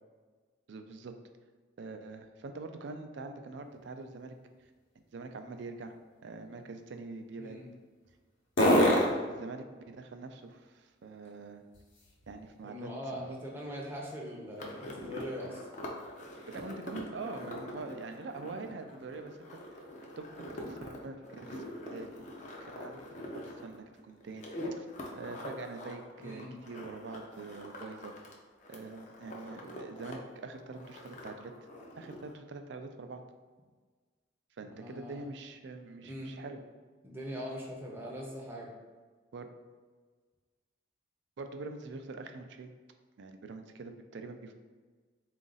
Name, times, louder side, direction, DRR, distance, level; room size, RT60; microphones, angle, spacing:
voice 1, 0.7-1.2 1.8-4.4 5.1-6.0 6.2-7.6 8.6-11.6 12.3-13.4 16.5-21.6 21.9-22.2 22.6-23.1 23.3-24.9 25.2-28.1 28.7-31.5 32.0-33.2 34.6-36.6 39.3-39.5 41.4-42.7 43.2-44.5, right 3 dB, 65° right, 6 dB, 0.4 m, -44 dB
sound 1, 3.6-12.6 13.1-16.9, equal, 70° left, 0.9 m, -35 dB
voice 2, 12.6-15.7 26.2-26.5 34.6-35.2 36.0-36.3 37.0-38.7, equal, 10° right, -3 dB, 0.6 m, -41 dB
sound 2, 14.6-28.3 28.6-30.1 30.4-32.3, left 1 dB, 40° left, 0.5 m, -44 dB
3.9 x 2.5 x 3.9 m, 1.4 s
head